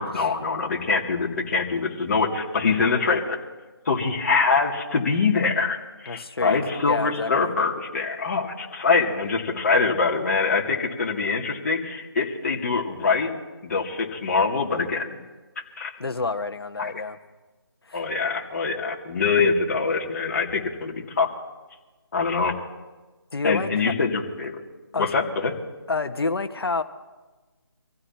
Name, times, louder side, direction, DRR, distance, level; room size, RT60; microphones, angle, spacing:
voice 1, 0.0-3.4 3.9-13.3 13.6-15.2 15.8-15.9 16.8-16.9 17.9-21.3 22.1-22.6 23.4-24.6 25.0-25.5, left 4 dB, 40° left, 0 dB, 2.6 m, -24 dB
voice 2, 6.0-7.5 16.0-17.2 17.9-18.1 23.3-23.9 24.9-25.1 25.9-26.8, left 3 dB, 70° left, 8 dB, 1.5 m, -28 dB
26.5 x 15.5 x 2.9 m, 1.2 s
figure-of-eight pair, 160°, 13 cm